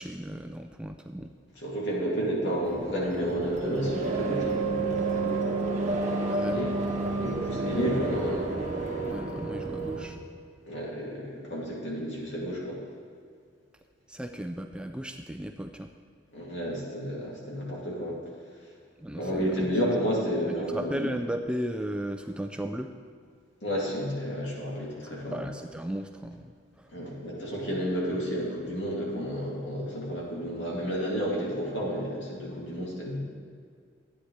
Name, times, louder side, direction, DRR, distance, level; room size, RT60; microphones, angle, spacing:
voice 1, 0.0-1.3 6.3-6.7 9.1-10.2 14.1-15.9 19.0-19.7 20.5-22.9 25.3-26.9, equal, 5° right, 4 dB, 0.3 m, -35 dB
voice 2, 1.6-4.6 6.5-6.7 7.2-8.5 10.6-12.8 16.3-18.2 19.1-21.1 23.6-25.4 26.9-33.2, equal, 65° left, -5 dB, 2.7 m, -31 dB
sound 1, 2.6-10.0, right 3 dB, 40° right, 1.3 m, -30 dB
13.0 x 9.3 x 3.3 m, 2.1 s
head